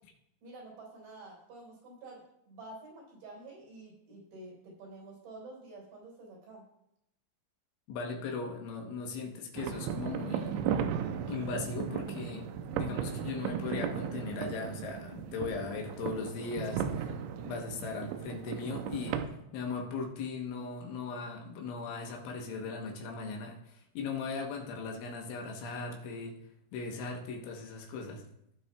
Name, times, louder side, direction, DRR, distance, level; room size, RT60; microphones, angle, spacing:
voice 1, 0.4-6.6 20.5-20.6, right 2 dB, 60° right, -3 dB, 5.8 m, -49 dB
voice 2, 7.9-10.6 11.3-19.2 19.5-26.4 26.7-28.2, left 4 dB, 75° left, 0 dB, 3.4 m, -38 dB
sound 1, 9.6-19.3, right 8 dB, 85° right, 2.7 m, -36 dB
18.0 x 7.6 x 2.3 m, 0.80 s
omnidirectional pair, 5.8 m